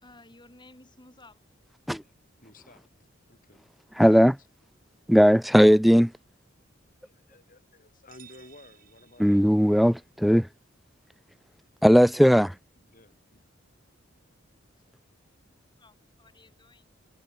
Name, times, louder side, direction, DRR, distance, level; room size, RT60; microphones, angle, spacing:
voice 1, 0.0-1.4 15.5-16.9, left 2 dB, 25° left, 4.8 m, -54 dB
voice 2, 2.4-3.7 7.0-9.5 12.8-13.4 14.7-15.0, left 2 dB, 45° left, 6.3 m, -54 dB
voice 3, 4.0-4.4 5.1-6.1 9.2-10.5 11.8-12.5, equal, ahead, 0.4 m, -18 dB
sound 1, 8.1-9.9, right 10 dB, 50° right, 3.3 m, -56 dB
head